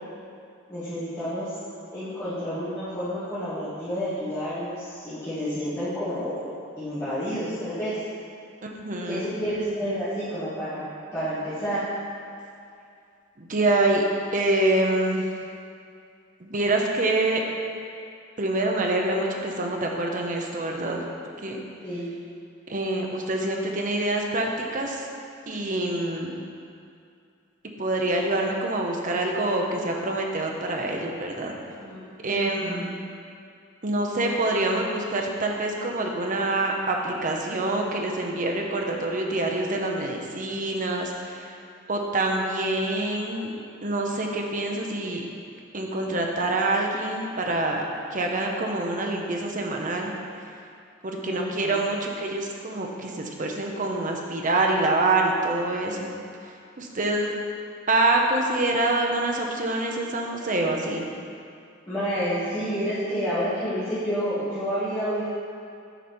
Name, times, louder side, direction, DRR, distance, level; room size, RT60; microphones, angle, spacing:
voice 1, 0.7-1.5 1.9-6.4 6.8-8.0 9.0-10.9 11.1-11.9 21.8-22.0 31.7-32.0 32.3-32.8 51.2-51.8 61.9-65.3, equal, 15° left, -17 dB, 2.0 m, -29 dB
voice 2, 8.6-9.3 13.4-14.0 14.3-15.2 16.4-17.4 18.4-21.0 21.4-21.6 22.7-25.0 25.5-26.3 27.8-31.5 32.2-33.0 33.8-41.1 41.9-43.5 43.8-45.3 45.7-47.8 48.1-50.1 51.0-53.1 53.4-56.1 56.8-57.3 57.9-61.1, right 2 dB, 40° right, 1 dB, 0.8 m, -26 dB
9.1 x 4.9 x 4.4 m, 2.5 s
head